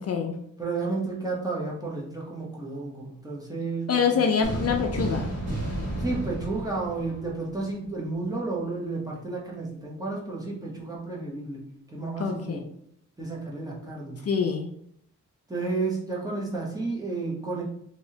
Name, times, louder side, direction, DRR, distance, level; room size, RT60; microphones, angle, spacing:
voice 1, 0.0-0.3 3.9-5.3 12.2-12.6 14.2-14.6, left 6 dB, 55° left, 4 dB, 0.4 m, -25 dB
voice 2, 0.6-4.2 6.0-12.6 13.2-14.2 15.5-17.6, right 3 dB, 10° right, -4 dB, 0.8 m, -32 dB
sound 1, 4.4-7.9, right 1 dB, 55° right, 1.4 m, -32 dB
3.1 x 2.8 x 2.8 m, 0.69 s
wide cardioid pair, 115°, 30 cm